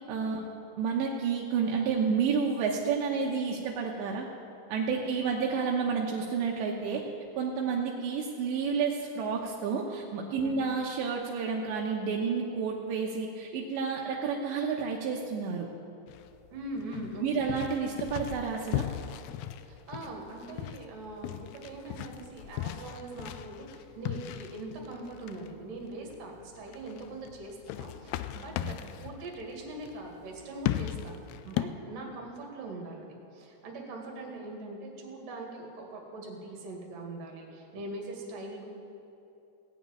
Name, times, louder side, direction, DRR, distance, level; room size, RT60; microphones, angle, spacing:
voice 1, 0.1-0.4 0.8-4.3 4.7-7.1 7.4-15.7 17.2-18.9 28.6-28.7, right 5 dB, 80° right, -1 dB, 3.1 m, -30 dB
sound 1, 16.1-31.6, left 14 dB, 85° left, 2.3 m, -38 dB
voice 2, 16.5-17.6 19.6-31.2 31.4-38.7, right 2 dB, 55° right, 0 dB, 3.4 m, -42 dB
17.5 x 7.1 x 9.0 m, 3.0 s
omnidirectional pair, 5.2 m